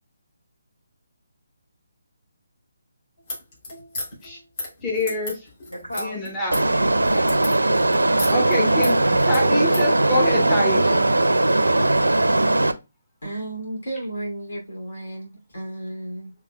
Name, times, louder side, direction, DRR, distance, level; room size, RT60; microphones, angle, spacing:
sound 1, 3.2-9.9, left 2 dB, 40° left, 3.0 m, -35 dB
voice 1, 4.8-5.4 6.0-6.5 8.3-11.0, left 1 dB, 15° left, 1.1 m, -25 dB
voice 2, 5.7-7.4 9.7-10.1, equal, 85° left, 1.8 m, -37 dB
sound 2, 6.5-12.7, right 2 dB, 75° right, 0.5 m, -19 dB
voice 3, 13.2-16.3, right 1 dB, 60° left, 2.6 m, -33 dB
6.4 x 3.5 x 2.3 m
figure-of-eight pair, 145°, 0 cm